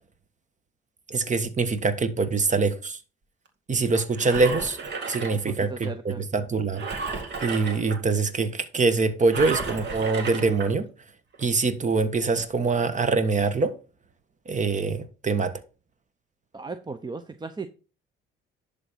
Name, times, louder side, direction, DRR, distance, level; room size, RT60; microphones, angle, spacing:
voice 1, 1.1-3.0 3.7-4.8 5.1-5.9 6.2-6.8 7.1-10.9 11.4-13.7 14.5-15.5, right 4 dB, 35° right, 1.3 m, -24 dB
Engine, 3.9-5.9 6.7-8.0 9.3-10.7 11.3-11.4, right 4 dB, 55° right, 2.2 m, -33 dB
voice 2, 5.3-6.3 16.5-17.7, right 4 dB, 20° right, 0.7 m, -36 dB
11.0 x 3.7 x 5.6 m
supercardioid pair, 65°, 21 cm